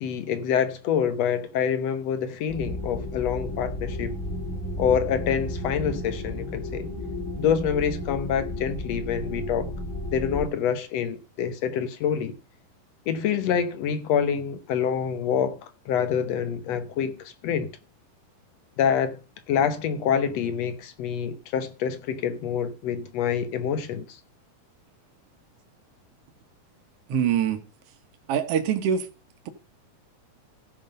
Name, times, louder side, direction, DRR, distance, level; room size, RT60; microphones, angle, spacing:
voice 1, 0.0-4.1 4.8-6.9 7.4-9.7 10.1-12.3 13.1-17.7 18.8-19.2 19.5-24.2, left 8 dB, 65° left, 1.8 m, -26 dB
sound 1, 2.5-10.5, left 1 dB, 30° left, 1.7 m, -33 dB
voice 2, 27.1-27.6 28.3-29.1, right 8 dB, 60° right, 1.7 m, -24 dB
14.5 x 5.5 x 5.3 m
omnidirectional pair, 3.8 m